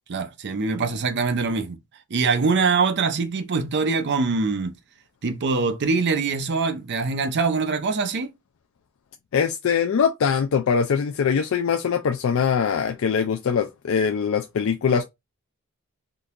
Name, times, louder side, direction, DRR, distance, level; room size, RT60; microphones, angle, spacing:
voice 1, 0.1-1.8 2.1-4.8 5.2-8.3, right 4 dB, 50° right, 0.6 m, -23 dB
voice 2, 9.3-15.0, left 6 dB, 65° left, 0.4 m, -22 dB
3.7 x 2.7 x 2.5 m
head